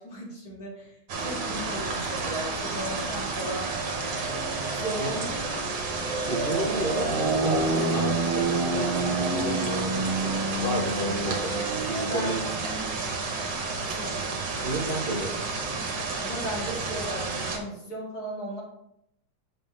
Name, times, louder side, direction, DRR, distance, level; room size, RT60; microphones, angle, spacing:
voice 1, 0.0-3.7 4.7-5.6 11.9-12.4 13.9-14.3 16.2-18.6, right 1 dB, 55° left, -5 dB, 2.7 m, -36 dB
sound 1, 1.1-17.6, right 3 dB, 75° right, 1.7 m, -29 dB
voice 2, 6.3-10.4 10.6-12.4 14.6-15.3, right 2 dB, 40° right, -4 dB, 0.8 m, -32 dB
6.6 x 3.8 x 3.8 m, 0.79 s
omnidirectional pair, 2.0 m